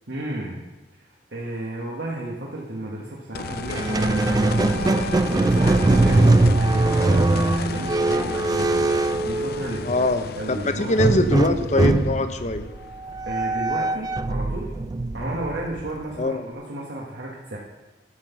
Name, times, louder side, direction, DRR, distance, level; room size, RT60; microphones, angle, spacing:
voice 1, 0.1-0.6 1.3-8.8 9.2-11.0 13.2-14.7 15.1-17.6, right 1 dB, 80° right, -4 dB, 1.6 m, -33 dB
sound 1, 3.3-14.2 16.5-16.6, left 5 dB, 60° left, 0.4 m, -34 dB
Wind instrument woodwind instrument, 3.3-7.6, left 1 dB, 5° left, 1.2 m, -39 dB
Squeak, 3.7-10.0 11.0-16.2, right 2 dB, 20° right, 0.3 m, -21 dB
voice 2, 9.8-12.7 16.2-16.5, left 1 dB, 40° left, 9 dB, 0.8 m, -23 dB
12.0 x 5.8 x 7.2 m, 1.2 s
head